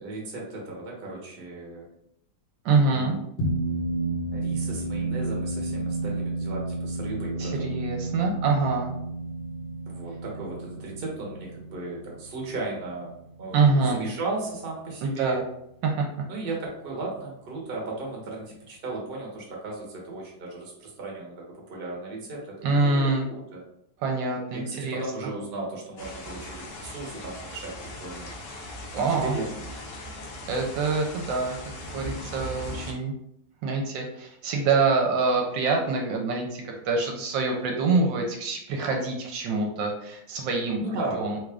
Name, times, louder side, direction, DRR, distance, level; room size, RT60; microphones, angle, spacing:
voice 1, 0.0-1.8 2.9-3.2 4.3-7.7 9.8-13.1 13.4-15.4 16.3-23.6 24.5-27.7 28.0-28.3 28.9-29.8 40.8-41.2, right 2 dB, 40° right, -2 dB, 0.9 m, -36 dB
voice 2, 2.6-3.2 7.4-8.9 13.5-14.0 15.0-15.4 15.8-16.0 22.6-23.3 24.0-25.3 28.9-29.4 30.5-31.5 31.9-33.1 33.6-40.8 41.1-41.4, right 4 dB, 75° right, 1 dB, 1.2 m, -25 dB
sound 1, 3.4-14.1, right 2 dB, 85° left, 1.6 m, -32 dB
sound 2, 26.0-32.9, left 1 dB, 60° left, 1.0 m, -39 dB
3.6 x 2.4 x 3.3 m, 0.77 s
omnidirectional pair, 2.1 m